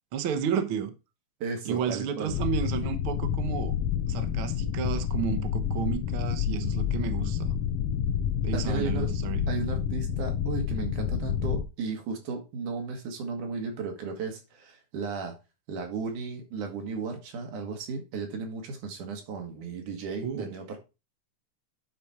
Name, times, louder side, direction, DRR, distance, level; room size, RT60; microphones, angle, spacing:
voice 1, 0.1-0.9 1.6-3.7 4.1-7.6 8.4-9.4 20.2-20.5, right 8 dB, 65° right, 1.4 m, -32 dB
voice 2, 1.4-2.3 8.5-9.1 9.5-15.4 15.7-20.8, right 4 dB, 80° right, 3.2 m, -35 dB
sound 1, 2.3-11.6, left 8 dB, 75° left, 1.6 m, -29 dB
10.0 x 4.3 x 4.8 m
omnidirectional pair, 3.5 m